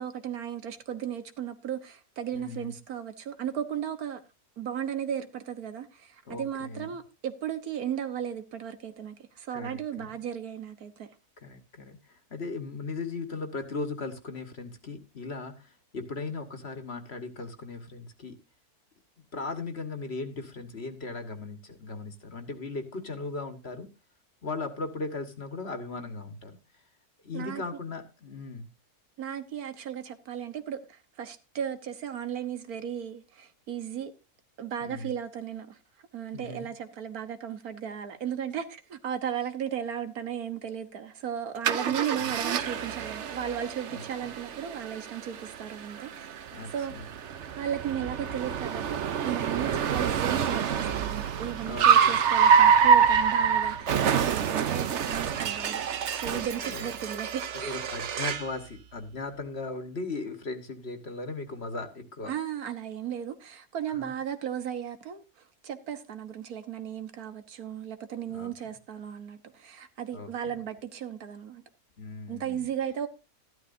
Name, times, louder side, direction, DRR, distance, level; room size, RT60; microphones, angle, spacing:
voice 1, 0.0-4.2 4.6-11.1 27.3-27.6 29.2-34.1 34.6-35.8 36.1-46.3 46.7-46.9 47.6-55.8 56.1-57.8 62.3-65.2 65.6-71.6 72.3-73.1, right 9 dB, 75° right, 1.6 m, -35 dB
voice 2, 2.3-2.8 6.3-7.0 9.5-10.1 11.4-18.4 19.2-23.9 24.4-26.6 27.2-28.7 34.8-35.1 36.3-36.7 41.8-42.3 43.9-44.3 46.5-47.1 51.6-52.2 56.3-56.9 57.5-62.3 63.9-64.1 68.3-68.5 70.1-70.6 72.0-72.7, left 3 dB, 45° left, 1.7 m, -38 dB
Car, 41.6-58.5, right 7 dB, 55° right, 1.0 m, -26 dB
13.5 x 12.0 x 2.7 m
omnidirectional pair, 1.6 m